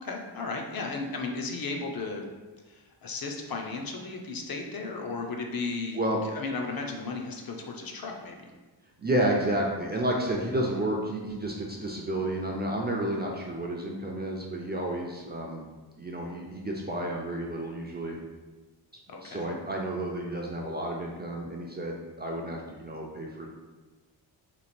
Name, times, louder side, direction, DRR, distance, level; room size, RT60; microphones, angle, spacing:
voice 1, 0.0-2.3 2.7-8.5 19.1-19.5, left 3 dB, 55° left, 2 dB, 0.6 m, -35 dB
voice 2, 9.0-15.6 16.0-18.2 19.2-23.5, right 1 dB, 25° right, -2 dB, 0.3 m, -31 dB
3.2 x 3.0 x 4.2 m, 1.2 s
wide cardioid pair, 180°, 44 cm